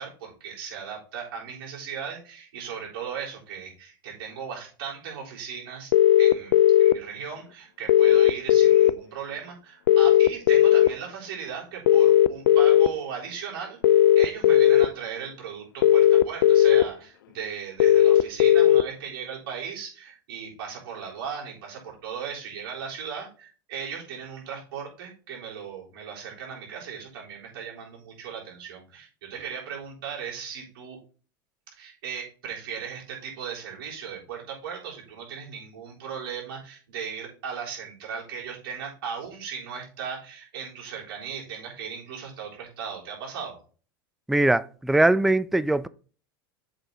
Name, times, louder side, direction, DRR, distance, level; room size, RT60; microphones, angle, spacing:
voice 1, 0.0-5.9 6.2-13.8 14.1-31.0 31.7-43.6, right 7 dB, 70° right, 3.9 m, -37 dB
sound 1, 5.9-6.9 7.9-8.9 9.9-10.9 11.9-12.9 13.8-14.9 15.8-16.8 17.8-18.8, left 12 dB, 75° left, 0.4 m, -16 dB
voice 2, 44.3-45.9, right 2 dB, ahead, 0.3 m, -21 dB
7.8 x 4.8 x 3.9 m
hypercardioid pair, 95°, 12 cm